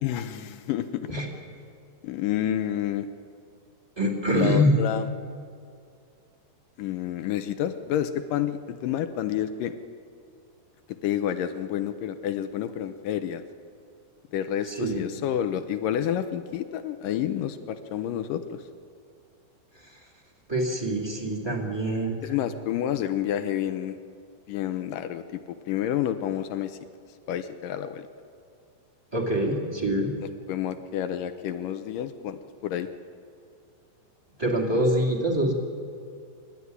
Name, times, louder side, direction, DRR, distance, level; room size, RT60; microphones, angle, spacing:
voice 1, 0.0-1.1 2.0-3.1 4.3-5.1 6.8-9.7 11.0-13.4 14.3-18.6 22.2-24.0 24.5-26.8 27.3-28.1 30.2-32.9, left 10 dB, 75° left, 10 dB, 2.1 m, -29 dB
voice 2, 4.0-4.8 14.7-15.0 20.5-22.2 29.1-30.1 34.4-35.5, equal, 10° right, -1 dB, 1.9 m, -25 dB
27.0 x 12.0 x 9.6 m, 2.4 s
omnidirectional pair, 4.5 m